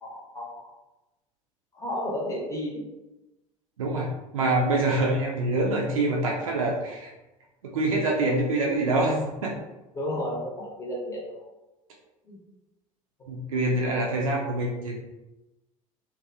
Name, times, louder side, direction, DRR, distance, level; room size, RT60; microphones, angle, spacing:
voice 1, 0.0-0.7 1.7-2.8 8.2-8.3 9.9-11.5 12.2-12.4, left 1 dB, 20° left, -4 dB, 0.9 m, -33 dB
voice 2, 3.8-4.1 4.3-7.1 7.6-9.5 13.3-15.0, right 2 dB, 75° right, -2 dB, 0.4 m, -25 dB
2.6 x 2.2 x 2.5 m, 1.0 s
figure-of-eight pair, 65°, 18 cm